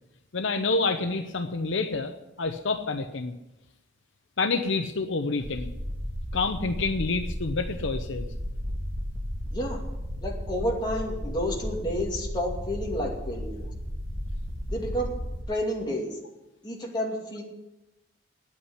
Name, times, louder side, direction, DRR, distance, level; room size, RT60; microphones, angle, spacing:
voice 1, 0.3-2.1 2.4-3.4 4.4-5.7 6.3-8.3, left 3 dB, 65° left, 7 dB, 0.8 m, -28 dB
sound 1, 5.4-15.4, equal, 80° right, 2.2 m, -34 dB
voice 2, 10.2-13.7 14.7-15.1 15.5-16.1 16.6-17.4, equal, 20° left, -2 dB, 2.5 m, -30 dB
9.6 x 8.6 x 9.8 m, 0.96 s
head